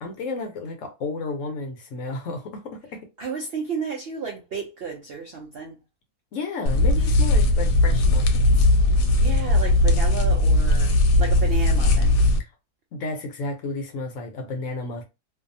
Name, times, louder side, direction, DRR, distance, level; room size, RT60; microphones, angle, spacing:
voice 1, 0.0-3.1 6.3-8.7 12.4-12.5 12.9-15.0, left 3 dB, 65° left, 0.9 m, -32 dB
voice 2, 3.2-5.8 9.2-12.1, right 5 dB, 70° right, 0.5 m, -32 dB
sound 1, 6.7-12.4, left 1 dB, 85° left, 1.2 m, -18 dB
2.6 x 2.3 x 2.6 m
omnidirectional pair, 1.6 m